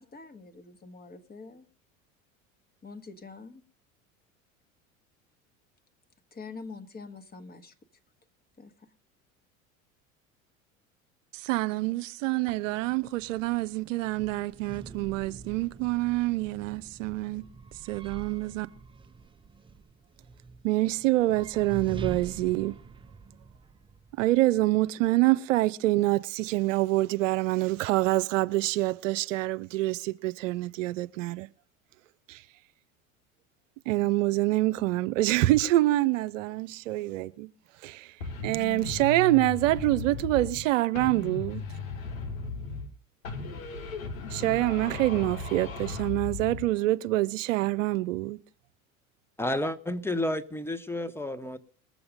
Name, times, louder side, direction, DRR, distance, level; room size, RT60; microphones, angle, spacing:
voice 1, 0.0-1.6 2.8-3.6 6.3-7.7 8.6-8.9, left 4 dB, 20° left, 1.6 m, -45 dB
voice 2, 11.4-17.4 17.9-18.7 20.6-22.7 24.2-31.5 32.3-32.4 33.9-37.5 37.8-38.1 38.4-41.6 44.3-48.4, right 18 dB, 65° right, 0.7 m, -26 dB
sound 1, 12.6-24.8, right 4 dB, 15° right, 0.5 m, -46 dB
sound 2, 38.2-40.7 40.9-43.0 43.2-46.7, left 3 dB, 80° left, 1.6 m, -36 dB
voice 3, 49.4-51.6, left 1 dB, 5° left, 1.2 m, -31 dB
21.0 x 7.0 x 5.1 m
hypercardioid pair, 75°, 41 cm